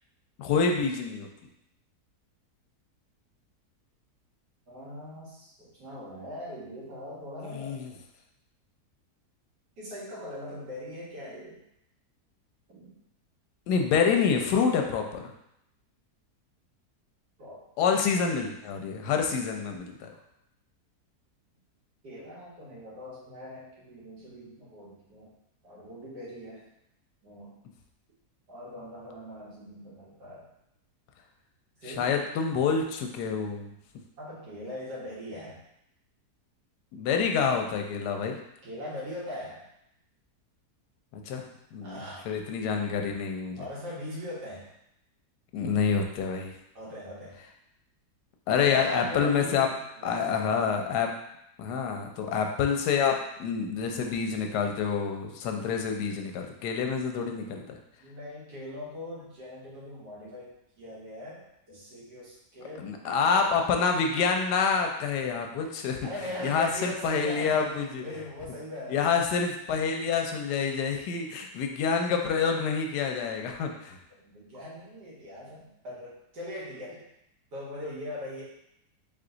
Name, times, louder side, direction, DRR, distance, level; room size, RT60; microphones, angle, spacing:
voice 1, 0.4-1.3 7.4-7.9 13.7-15.2 17.8-20.1 31.9-33.7 36.9-38.4 41.1-41.4 41.7-43.6 45.5-46.5 48.5-49.7 50.0-51.1 51.6-57.8 62.8-66.0 66.4-68.0 68.9-74.0, left 6 dB, 85° left, 3 dB, 1.2 m, -27 dB
voice 2, 4.7-7.8 9.8-11.6 12.7-12.9 17.4-18.0 22.0-25.3 25.6-26.6 27.2-27.5 28.5-30.5 31.8-32.2 34.2-35.6 38.6-39.6 41.8-42.3 43.6-44.7 46.7-47.4 48.6-50.6 58.0-63.7 66.0-69.1 74.2-77.0 77.5-78.4, left 1 dB, 85° right, -6 dB, 2.0 m, -41 dB
3.7 x 3.4 x 3.8 m, 0.80 s
omnidirectional pair, 1.7 m